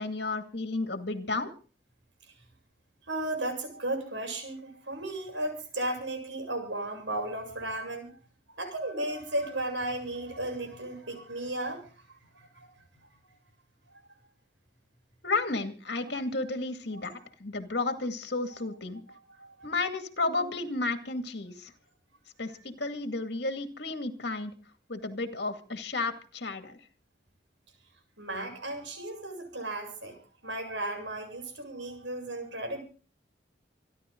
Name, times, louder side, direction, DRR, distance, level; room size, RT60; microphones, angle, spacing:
voice 1, 0.0-1.5 15.2-19.0 19.6-21.7 22.4-24.5 24.9-26.7, left 3 dB, 60° left, 7 dB, 2.3 m, -32 dB
voice 2, 3.1-8.1 8.5-11.8 12.3-12.7 16.9-17.2 19.4-19.7 28.2-32.8, right 1 dB, 75° right, 4 dB, 7.6 m, -35 dB
27.0 x 11.5 x 3.9 m, 0.37 s
head